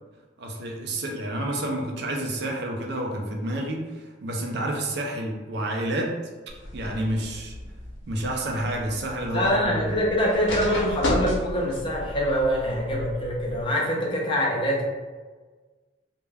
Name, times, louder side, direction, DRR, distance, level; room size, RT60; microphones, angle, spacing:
voice 1, 0.4-6.2 6.7-7.5 8.1-10.1, right 1 dB, 55° right, 0 dB, 0.4 m, -29 dB
sound 1, 6.5-13.6, left 1 dB, 70° left, 0.6 m, -33 dB
voice 2, 9.3-14.9, equal, 25° left, -2 dB, 0.4 m, -24 dB
2.3 x 2.1 x 3.2 m, 1.3 s
head